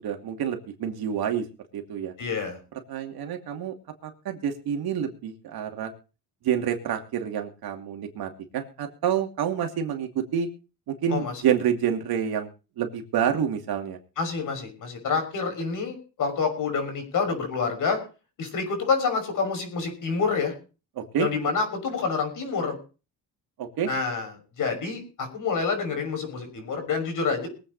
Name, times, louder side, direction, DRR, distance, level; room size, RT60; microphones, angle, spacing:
voice 1, 0.0-1.4 1.7-2.1 2.9-3.7 4.0-5.9 6.4-10.5 10.9-12.5 12.8-14.0 21.0-21.3 23.6-23.9, right 8 dB, 65° right, 4 dB, 2.7 m, -28 dB
voice 2, 2.2-2.6 11.1-11.3 14.2-18.0 18.4-20.5 21.2-22.8 23.8-27.5, left 5 dB, 50° left, 4 dB, 6.2 m, -27 dB
23.0 x 8.6 x 4.2 m, 0.34 s
cardioid pair, 140°, 41 cm